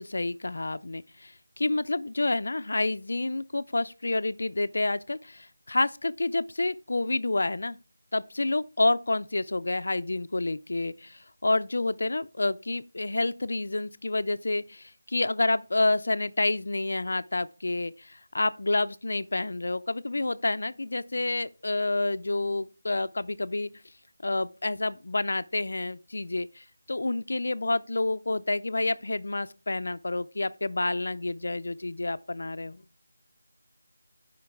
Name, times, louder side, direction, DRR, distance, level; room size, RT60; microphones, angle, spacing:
voice 1, 0.0-7.8 8.1-23.7 24.2-32.8, left 2 dB, 55° left, 0.4 m, -29 dB
11.5 x 5.1 x 4.5 m
figure-of-eight pair, 175°, 0 cm